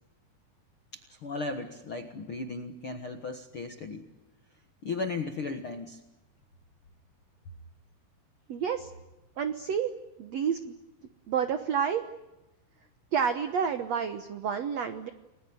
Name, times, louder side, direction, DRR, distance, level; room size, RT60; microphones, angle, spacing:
voice 1, 0.9-4.1 4.8-6.0, left 3 dB, 60° left, 6 dB, 1.3 m, -36 dB
voice 2, 8.5-8.9 9.4-9.9 10.2-10.8 11.3-12.0 13.1-15.1, right 7 dB, 80° right, 9 dB, 1.5 m, -29 dB
30.0 x 21.0 x 9.5 m, 1.0 s
omnidirectional pair, 4.7 m